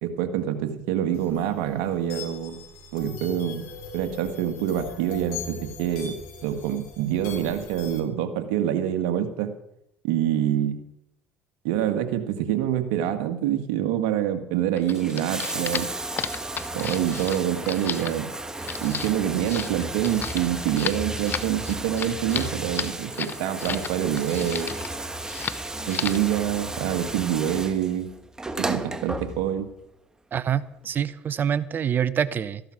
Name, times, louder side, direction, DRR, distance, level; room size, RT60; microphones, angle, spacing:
voice 1, 0.0-2.6 2.9-3.7 3.9-6.2 6.4-9.5 10.0-10.8 11.6-15.9 16.7-18.3 18.8-24.7 25.9-28.1 28.6-29.7, right 10 dB, 75° right, 7 dB, 1.7 m, -26 dB
sound 1, 1.1-8.0, left 5 dB, 70° left, 4.8 m, -40 dB
sound 2, 14.8-23.9 24.2-24.9 25.3-25.6 25.9-26.3, left 7 dB, 40° left, 1.0 m, -33 dB
Bathtub (filling or washing), 14.8-29.7 30.8-30.9, right 2 dB, 15° right, 1.4 m, -34 dB
voice 2, 30.3-32.6, right 8 dB, 45° right, 16 dB, 0.9 m, -26 dB
14.5 x 11.5 x 6.0 m, 0.81 s
supercardioid pair, 75°, 5 cm